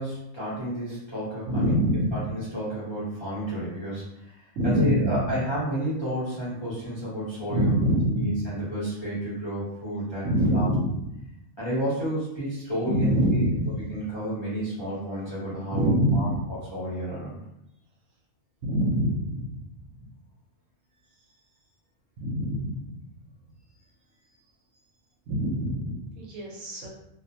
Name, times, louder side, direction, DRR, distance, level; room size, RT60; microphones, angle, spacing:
voice 1, 0.0-1.8 2.1-4.4 4.6-10.7 11.6-13.4 13.9-16.3 16.7-17.4, right 1 dB, 25° left, -11 dB, 0.8 m, -31 dB
voice 2, 1.5-2.2 4.6-5.3 7.5-8.3 10.2-11.0 12.9-14.0 15.7-16.4 18.6-19.6 22.2-22.9 25.3-26.9, equal, 75° right, -2 dB, 0.9 m, -25 dB
2.5 x 2.0 x 2.7 m, 0.82 s
omnidirectional pair, 1.4 m